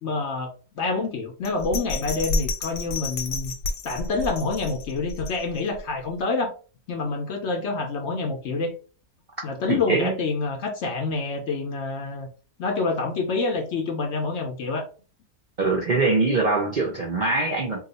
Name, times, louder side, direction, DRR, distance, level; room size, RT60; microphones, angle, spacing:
voice 1, 0.0-3.5 3.8-6.5 6.9-8.7 9.4-12.3 12.6-14.9, left 3 dB, 65° left, 0.7 m, -27 dB
Bell, 1.4-5.8 6.2-6.3, left 2 dB, 85° left, 1.2 m, -30 dB
voice 2, 9.7-10.2 15.6-17.8, right 3 dB, 75° right, 0.4 m, -23 dB
2.7 x 2.3 x 3.9 m
omnidirectional pair, 1.6 m